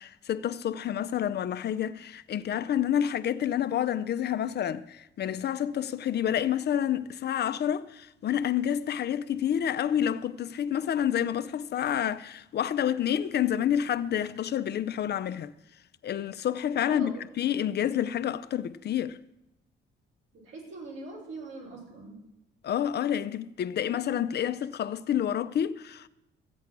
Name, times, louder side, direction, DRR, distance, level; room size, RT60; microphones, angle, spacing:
voice 1, 0.0-15.5 16.0-19.2 22.6-26.1, left 10 dB, 55° left, 0.6 m, -29 dB
voice 2, 16.8-17.2 20.3-22.2, right 3 dB, 80° right, 4.9 m, -42 dB
14.5 x 8.2 x 6.0 m
cardioid pair, 90°, 20 cm